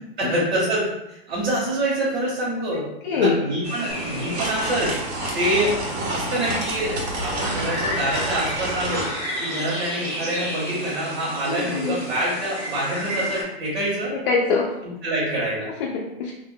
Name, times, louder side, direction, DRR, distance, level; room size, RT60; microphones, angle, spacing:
voice 1, 0.2-2.8 3.1-4.9 5.3-5.8 6.1-9.0 9.4-14.1 15.0-15.7, right 1 dB, 65° right, -6 dB, 1.1 m, -26 dB
voice 2, 3.0-3.4 11.5-12.0 14.1-14.7 15.8-16.3, left 4 dB, 55° left, -2 dB, 0.5 m, -23 dB
sound 1, 3.6-13.4, equal, 25° right, 0.6 m, -33 dB
sound 2, 3.9-9.1, right 1 dB, 85° right, 1.2 m, -29 dB
2.5 x 2.1 x 3.6 m, 0.89 s
supercardioid pair, 180°, 32 cm